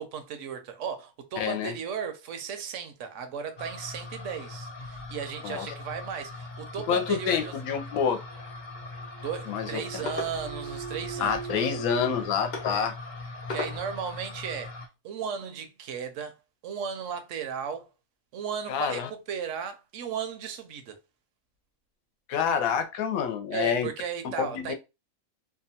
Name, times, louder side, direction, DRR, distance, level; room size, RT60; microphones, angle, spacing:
voice 1, 0.0-7.6 9.2-11.7 12.6-12.9 13.5-16.4 16.6-17.9 18.3-21.0 23.5-24.7, right 7 dB, 70° right, 0.8 m, -36 dB
voice 2, 1.4-1.7 5.4-5.7 6.9-8.2 9.5-9.7 9.9-10.0 11.2-12.9 18.7-19.1 22.3-23.9 24.4-24.7, left 7 dB, 80° left, 1.0 m, -27 dB
sound 1, 3.6-14.9, left 2 dB, 55° left, 0.5 m, -39 dB
sound 2, 8.3-12.2, right 9 dB, 90° right, 1.2 m, -41 dB
2.7 x 2.2 x 2.7 m
omnidirectional pair, 1.5 m